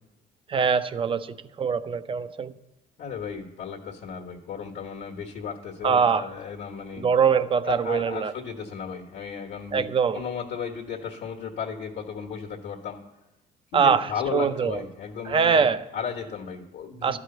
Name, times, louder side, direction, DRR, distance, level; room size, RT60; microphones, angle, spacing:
voice 1, 0.5-2.5 5.8-6.3 7.0-8.3 9.7-10.2 13.7-14.8 15.3-15.8 17.0-17.2, right 6 dB, 30° right, 13 dB, 0.5 m, -23 dB
voice 2, 3.0-7.1 7.6-9.9 10.1-13.0 13.7-17.2, left 6 dB, 70° left, 0 dB, 1.3 m, -35 dB
12.5 x 4.9 x 7.8 m, 1.0 s
cardioid pair, 110°, 17 cm